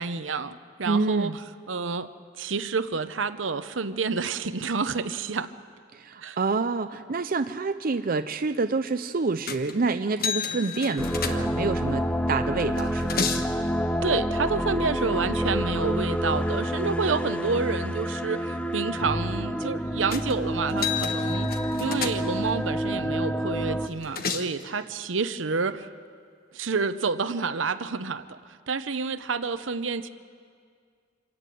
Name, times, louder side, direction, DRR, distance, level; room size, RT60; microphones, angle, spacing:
voice 1, 0.0-1.3 1.7-2.1 2.4-5.5 6.2-6.4 14.0-21.5 21.8-25.9 26.5-28.4 28.7-30.1, right 4 dB, 75° right, 11 dB, 0.9 m, -29 dB
voice 2, 0.8-1.4 5.9-13.3, right 4 dB, 50° right, 8 dB, 0.6 m, -27 dB
sound 1, 9.5-9.8 10.2-11.8 12.6-13.5 20.1-20.4 20.7-22.5 23.8-24.6, left 6 dB, 50° left, 1.3 m, -32 dB
sound 2, 11.0-23.9, equal, 5° left, 0.5 m, -28 dB
26.0 x 15.0 x 9.2 m, 2.2 s
head